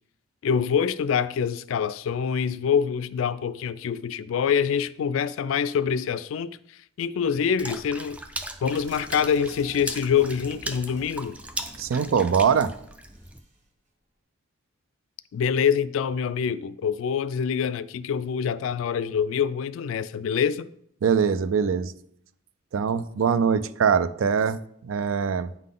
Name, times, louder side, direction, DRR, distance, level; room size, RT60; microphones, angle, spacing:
voice 1, 0.4-6.6 7.0-8.2 8.6-11.4 15.3-20.7, left 7 dB, 85° left, 0.3 m, -25 dB
Water / Splash splatter, 7.6-13.4, right 1 dB, 5° right, 0.3 m, -38 dB
sound 1, 8.6-13.6, equal, 35° right, 1.5 m, -49 dB
voice 2, 11.8-12.7 21.0-21.9 22.7-25.6, right 6 dB, 85° right, 0.4 m, -23 dB
9.0 x 3.8 x 3.8 m
head